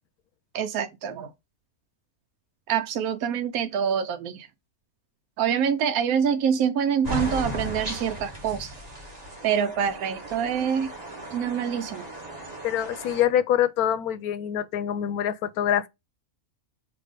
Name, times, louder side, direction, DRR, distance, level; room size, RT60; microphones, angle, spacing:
voice 1, 0.5-1.3 2.7-4.5 5.4-8.7 9.4-10.9 11.3-12.0, right 8 dB, 80° right, 1.1 m, -26 dB
sound 1, 7.0-13.2, equal, 25° right, 1.8 m, -36 dB
voice 2, 12.6-15.9, left 10 dB, 90° left, 1.1 m, -25 dB
6.8 x 2.9 x 5.0 m
omnidirectional pair, 1.5 m